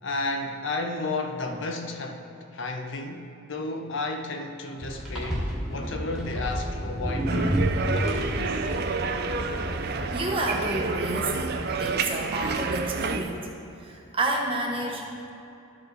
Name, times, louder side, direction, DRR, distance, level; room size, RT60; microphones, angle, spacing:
voice 1, 0.0-7.6 7.9-8.6, left 2 dB, 55° left, 4 dB, 0.6 m, -33 dB
sound 1, 4.8-10.1, equal, 5° right, 1.3 m, -30 dB
sound 2, 7.3-13.2, right 4 dB, 45° right, 0.4 m, -29 dB
sound 3, 8.0-11.2, left 11 dB, 85° left, 1.2 m, -45 dB
voice 2, 9.8-13.4 13.8-15.3, right 2 dB, 25° right, 0 dB, 0.8 m, -30 dB
12.5 x 4.9 x 4.0 m, 2.9 s
head